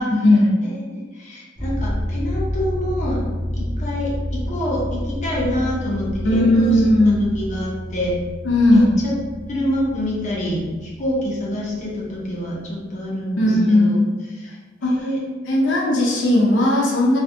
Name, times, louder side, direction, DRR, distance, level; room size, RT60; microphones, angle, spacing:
voice 1, 0.0-0.5 6.2-7.2 8.4-8.9 13.4-14.0 14.8-14.9 15.5-17.2, left 1 dB, 80° left, -2 dB, 0.6 m, -16 dB
voice 2, 0.6-3.2 3.5-8.1 8.7-9.1 9.5-14.0 14.3-15.2, left 1 dB, 40° left, -4 dB, 0.7 m, -26 dB
sound 1, 1.5-12.4, equal, 10° right, 0.6 m, -29 dB
2.5 x 2.2 x 2.6 m, 1.3 s
head